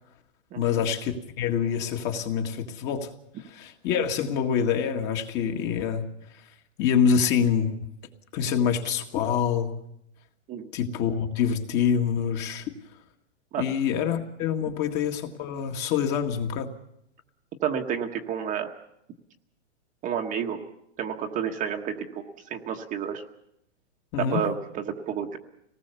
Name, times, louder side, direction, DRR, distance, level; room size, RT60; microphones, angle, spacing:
voice 1, 0.6-3.1 3.4-6.0 6.8-7.8 8.3-9.7 10.7-12.7 13.6-16.7 24.1-24.4, left 7 dB, 30° left, 4 dB, 2.0 m, -26 dB
voice 2, 17.6-18.7 20.0-20.6 21.0-23.2 24.2-25.4, right 8 dB, 20° right, 3 dB, 1.3 m, -30 dB
25.5 x 19.0 x 7.0 m, 0.80 s
hypercardioid pair, 150°, 36 cm